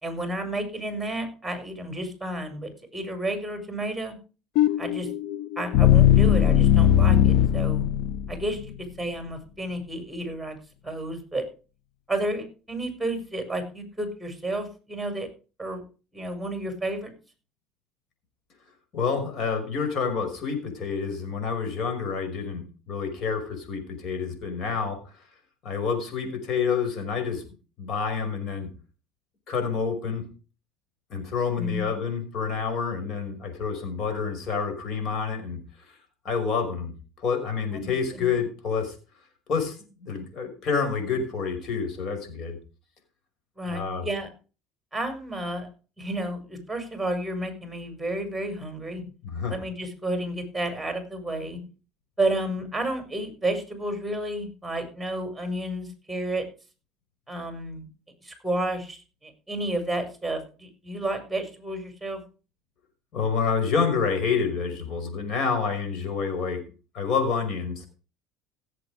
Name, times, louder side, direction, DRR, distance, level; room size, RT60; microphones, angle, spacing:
voice 1, 0.0-4.1 4.8-5.1 5.6-7.8 8.3-10.6 10.8-11.4 12.1-15.3 15.6-15.8 16.1-17.1 31.6-31.8 37.7-38.4 43.6-44.3 44.9-45.7 46.0-49.0 49.5-51.6 52.2-56.4 57.3-57.9 58.2-62.2, right 1 dB, 5° right, 6 dB, 5.8 m, -31 dB
sound 1, 4.6-8.6, left 10 dB, 70° left, 1.0 m, -19 dB
voice 2, 18.9-25.0 25.6-27.4 27.8-28.7 29.5-30.2 31.1-35.6 35.9-36.0 36.2-38.9 39.5-42.6 43.7-44.1 49.2-49.5 51.5-51.7 63.1-66.6 66.9-67.9, left 5 dB, 55° left, 6 dB, 5.6 m, -28 dB
16.5 x 7.8 x 5.0 m, 0.34 s
supercardioid pair, 90°, 0 cm